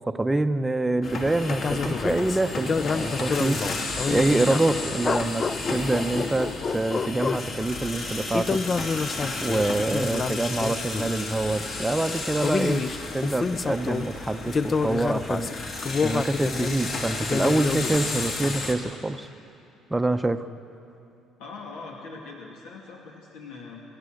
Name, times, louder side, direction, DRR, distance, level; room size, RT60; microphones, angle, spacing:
voice 1, 0.1-8.6 9.4-12.8 13.1-19.3 19.9-20.5, right 2 dB, 10° right, 9 dB, 0.7 m, -26 dB
sound 1, 1.0-18.7, left 3 dB, 45° left, 2.7 m, -33 dB
sound 2, 1.5-4.7 5.0-7.5 8.3-11.3 12.2-14.1 14.5-16.8 17.2-18.0, left 5 dB, 25° left, 0.4 m, -28 dB
voice 2, 21.4-23.8, left 4 dB, 85° left, -1 dB, 2.5 m, -41 dB
28.0 x 14.5 x 6.5 m, 2.6 s
cardioid pair, 145°, 0 cm